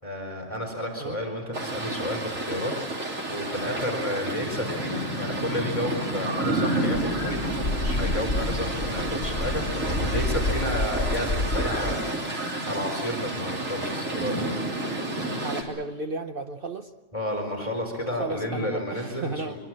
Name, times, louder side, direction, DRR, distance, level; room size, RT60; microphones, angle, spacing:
voice 1, 0.0-14.7 17.1-19.5, left 1 dB, 25° left, 2 dB, 4.7 m, -32 dB
sound 1, 1.5-15.6, right 1 dB, 90° right, 3.6 m, -30 dB
sound 2, 6.9-11.9, left 2 dB, 60° left, 3.0 m, -29 dB
voice 2, 15.4-16.9 18.2-19.6, right 3 dB, 45° right, 7 dB, 1.0 m, -33 dB
25.0 x 23.5 x 7.7 m, 1.2 s
omnidirectional pair, 1.3 m